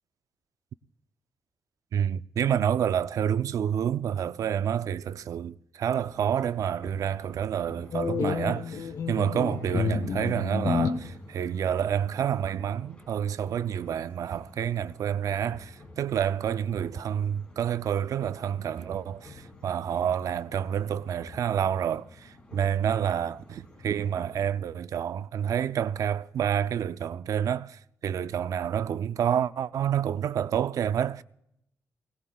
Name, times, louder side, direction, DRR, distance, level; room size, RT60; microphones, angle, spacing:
voice 1, 1.9-31.2, right 9 dB, 80° right, 0.5 m, -28 dB
sound 1, 6.0-24.5, left 2 dB, 20° left, 4.5 m, -50 dB
sound 2, 7.9-11.1, left 5 dB, 65° left, 0.8 m, -29 dB
21.0 x 18.5 x 2.3 m
wide cardioid pair, 120°, 6 cm